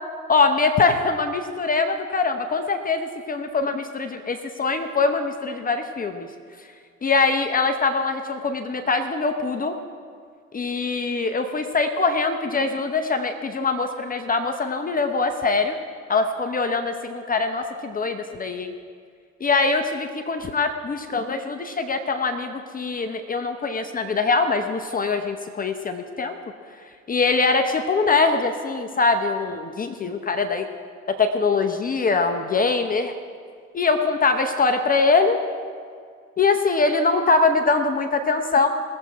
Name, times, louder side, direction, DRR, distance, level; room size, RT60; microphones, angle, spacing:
voice 1, 0.3-6.3 7.0-9.7 10.5-15.8 16.1-18.7 19.4-26.4 27.1-30.7 31.1-33.1 33.7-35.4 36.4-38.7, left 4 dB, 20° left, 6 dB, 0.9 m, -23 dB
20.5 x 7.5 x 4.7 m, 2.1 s
hypercardioid pair, 80°, 43 cm